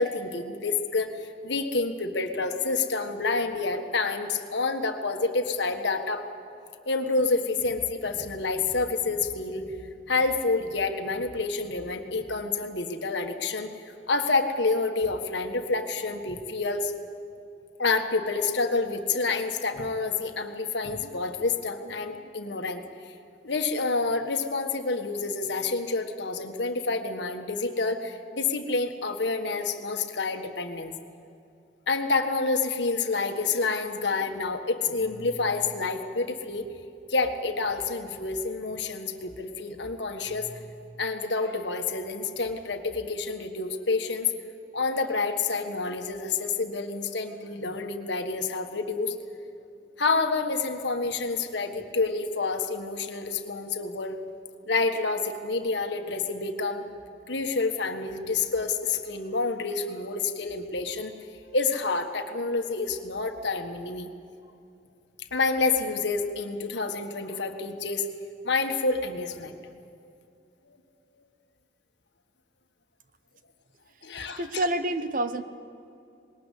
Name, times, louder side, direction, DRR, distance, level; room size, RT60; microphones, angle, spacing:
voice 1, 0.0-6.2 6.8-9.8 10.1-16.9 17.8-22.8 23.4-30.9 31.9-36.6 37.1-40.6 41.0-44.3 44.7-49.1 50.0-54.2 54.7-56.8 57.3-61.1 61.5-64.1 65.3-68.1 68.4-69.5 74.0-74.4, left 3 dB, 65° left, 6 dB, 1.6 m, -28 dB
voice 2, 74.4-75.4, right 1 dB, 45° right, 10 dB, 0.9 m, -27 dB
21.0 x 19.0 x 8.4 m, 2.6 s
head